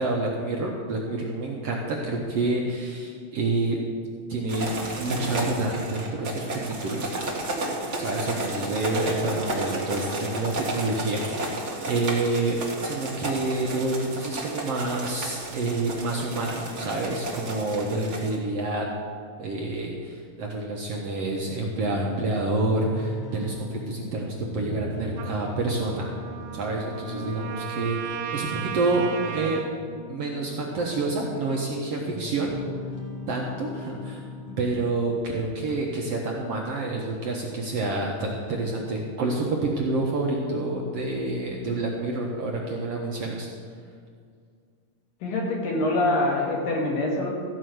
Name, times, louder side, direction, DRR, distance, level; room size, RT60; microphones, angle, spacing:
voice 1, 0.0-3.8 4.3-4.7 5.0-7.1 8.0-18.9 19.4-26.1 26.5-29.7 30.1-32.5 33.3-34.2 34.6-43.5, right 2 dB, 65° right, -1 dB, 1.7 m, -28 dB
sound 1, 4.5-18.3, right 2 dB, 45° right, 0.9 m, -32 dB
sound 2, 22.7-34.7, left 1 dB, 50° left, 1.6 m, -40 dB
Trumpet, 25.2-29.7, right 8 dB, 90° right, 2.5 m, -35 dB
voice 2, 45.2-47.3, left 2 dB, 75° left, -2 dB, 3.7 m, -25 dB
14.5 x 5.6 x 7.8 m, 2.1 s
omnidirectional pair, 3.9 m